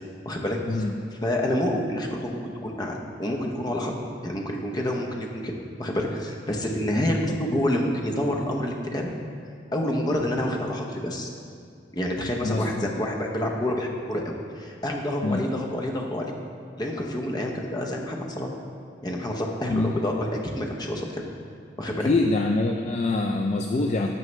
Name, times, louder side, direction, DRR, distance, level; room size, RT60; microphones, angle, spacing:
voice 1, 0.2-0.9 1.2-3.9 4.2-9.1 9.7-11.3 11.9-16.3 16.8-18.5 19.0-21.2 21.8-22.1, left 1 dB, 25° left, 0 dB, 0.8 m, -28 dB
voice 2, 12.4-12.9 15.2-15.4 19.7-19.9 22.0-24.1, left 2 dB, 40° left, 3 dB, 0.3 m, -25 dB
11.0 x 6.5 x 3.2 m, 2.3 s
head